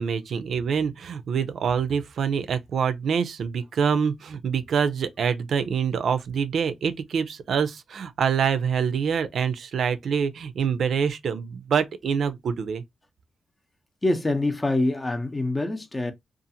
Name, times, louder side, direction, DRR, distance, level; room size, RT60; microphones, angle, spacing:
voice 1, 0.0-12.8, right 6 dB, 75° right, 0.4 m, -25 dB
voice 2, 14.0-16.1, left 2 dB, 30° left, 0.7 m, -25 dB
2.6 x 2.4 x 2.7 m
cardioid pair, 55°, 0 cm